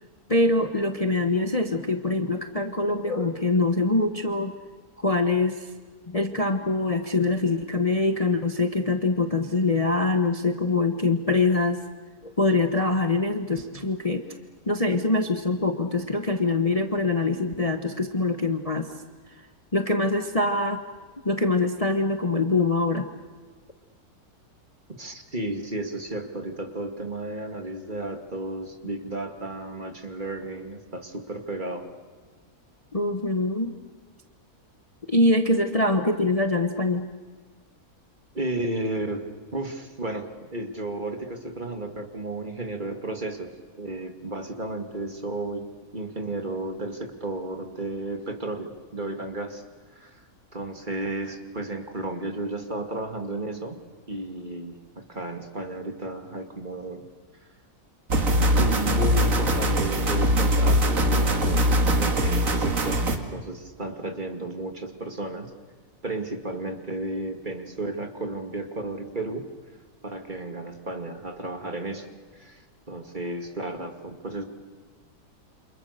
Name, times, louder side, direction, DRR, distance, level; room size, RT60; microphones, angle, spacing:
voice 1, 0.3-4.6 5.0-5.7 6.1-11.8 12.2-14.2 14.7-18.9 19.7-20.8 21.2-23.1 32.9-33.7 35.1-37.1, left 2 dB, 25° left, 6 dB, 1.2 m, -24 dB
voice 2, 25.0-31.9 38.3-43.5 43.8-49.6 49.9-50.2 50.5-53.8 54.1-57.0 58.4-65.5 66.0-69.5 70.0-72.1 72.3-74.4, right 2 dB, 30° right, 5 dB, 2.4 m, -33 dB
sound 1, 58.1-63.2, equal, 60° right, 2.5 m, -22 dB
29.0 x 27.0 x 6.7 m, 1.5 s
omnidirectional pair, 1.6 m